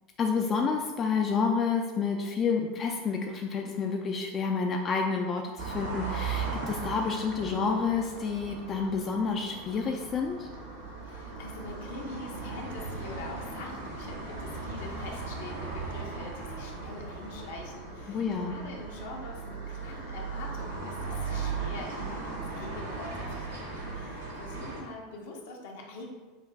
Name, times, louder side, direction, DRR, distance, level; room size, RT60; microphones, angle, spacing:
voice 1, 0.2-10.5 18.1-18.6, left 5 dB, 35° left, 2 dB, 0.3 m, -29 dB
sound 1, 5.6-24.8, right 4 dB, 80° right, 0.9 m, -37 dB
voice 2, 11.0-26.1, left 2 dB, 70° left, 0 dB, 0.7 m, -44 dB
5.7 x 2.5 x 2.3 m, 1.3 s
figure-of-eight pair, 80°, 0 cm